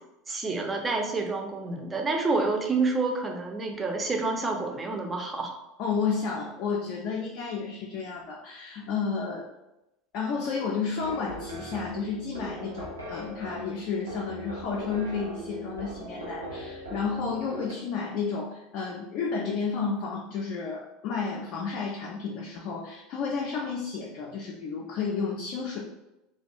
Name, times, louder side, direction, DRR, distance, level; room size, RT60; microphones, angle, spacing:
voice 1, 0.3-5.5, right 3 dB, 20° right, 3 dB, 0.4 m, -28 dB
voice 2, 5.8-9.5 10.1-25.8, left 5 dB, 50° left, -2 dB, 0.3 m, -31 dB
sound 1, 11.0-17.7, equal, 80° right, 0.4 m, -40 dB
2.3 x 2.2 x 2.5 m, 0.93 s
figure-of-eight pair, 75°, 0 cm